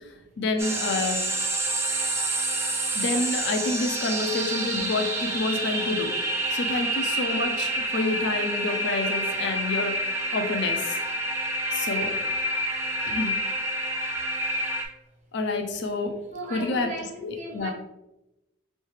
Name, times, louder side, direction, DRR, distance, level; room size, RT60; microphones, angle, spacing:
voice 1, 0.4-1.2 2.9-6.2 6.5-11.0 11.7-12.1 13.1-13.3 15.3-16.2 16.5-16.9 17.2-17.7, left 3 dB, 60° left, 0.4 m, -28 dB
sound 1, 0.6-14.8, right 1 dB, 15° right, 0.3 m, -28 dB
voice 2, 16.3-17.7, right 1 dB, 35° right, 0.7 m, -37 dB
3.2 x 3.2 x 3.1 m
head